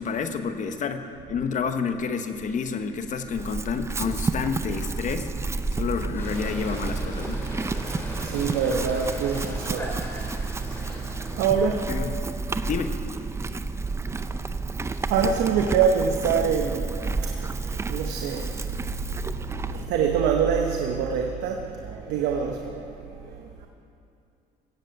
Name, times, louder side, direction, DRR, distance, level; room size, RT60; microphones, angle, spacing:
voice 1, 0.0-5.3 5.7-7.4 11.9-12.2 12.6-13.0, left 5 dB, 50° left, 8 dB, 1.0 m, -29 dB
Chewing mastication / Livestock farm animals working animals, 3.3-19.9, right 3 dB, 15° right, 0.5 m, -30 dB
sound 1, 6.2-11.4, left 1 dB, 15° left, 3.1 m, -39 dB
voice 2, 7.9-9.9 11.4-11.8 14.8-18.5 19.5-22.8, right 6 dB, 90° right, 3 dB, 1.0 m, -25 dB
17.0 x 7.7 x 7.8 m, 2.6 s
cardioid pair, 110°, 17 cm